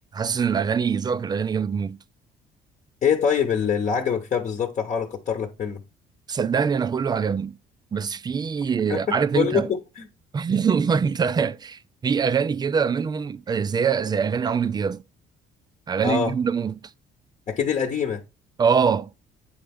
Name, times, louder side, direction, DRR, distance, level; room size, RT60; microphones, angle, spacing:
voice 1, 0.1-2.0 6.3-7.5 7.9-9.7 10.3-15.0 15.9-16.7 18.6-19.1, right 6 dB, 25° right, 0.4 m, -23 dB
voice 2, 3.0-5.8 8.9-10.1 16.0-16.3 17.5-18.2, left 7 dB, 40° left, 1.0 m, -24 dB
8.7 x 4.3 x 3.5 m
cardioid pair, 110°, 17 cm